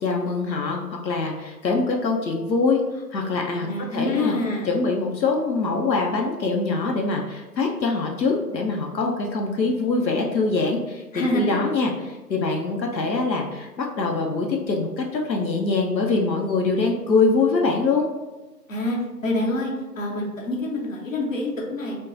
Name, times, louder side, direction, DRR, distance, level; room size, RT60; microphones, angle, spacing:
voice 1, 0.0-4.3 4.6-18.1, left 3 dB, 85° left, 0 dB, 0.7 m, -24 dB
voice 2, 3.6-4.7 11.1-11.6 18.7-19.0 19.2-22.0, left 1 dB, 50° left, -2 dB, 0.9 m, -26 dB
4.6 x 2.2 x 2.5 m, 1.2 s
figure-of-eight pair, 160°, 50 cm